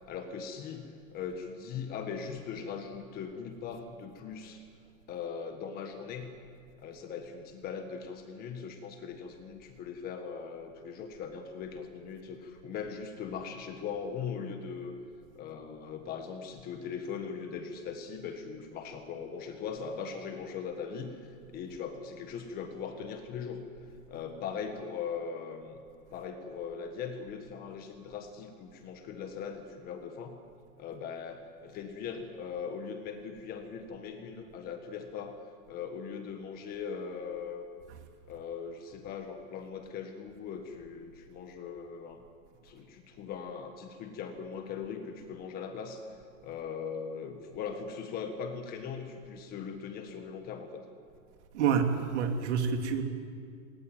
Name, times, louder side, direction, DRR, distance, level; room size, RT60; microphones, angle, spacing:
voice 1, 0.1-4.6 5.1-6.3 6.8-14.9 15.3-23.6 24.1-25.8 26.1-30.4 30.8-35.4 35.7-37.6 38.3-42.3 42.6-46.1 46.4-50.8, left 6 dB, 20° left, 6 dB, 1.5 m, -40 dB
voice 2, 51.5-53.0, right 6 dB, 55° right, 5 dB, 2.8 m, -28 dB
20.5 x 19.5 x 9.3 m, 2.3 s
supercardioid pair, 165°, 41 cm